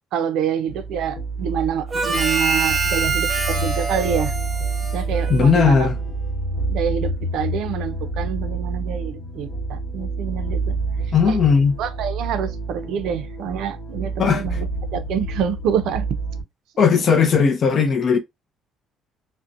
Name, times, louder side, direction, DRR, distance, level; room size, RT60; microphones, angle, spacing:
voice 1, 0.1-4.3 4.9-5.9 6.7-10.7 11.3-11.4 11.8-14.7 14.9-16.1, right 8 dB, 70° right, 0.4 m, -26 dB
sound 1, 0.7-16.4, right 3 dB, 55° left, 1.1 m, -28 dB
Harmonica, 1.9-5.7, right 4 dB, 20° right, 0.8 m, -25 dB
voice 2, 5.3-6.0 11.1-11.8 14.2-14.6 16.8-18.2, left 6 dB, 35° left, 0.5 m, -17 dB
2.5 x 2.1 x 2.5 m
cardioid pair, 155°, 0 cm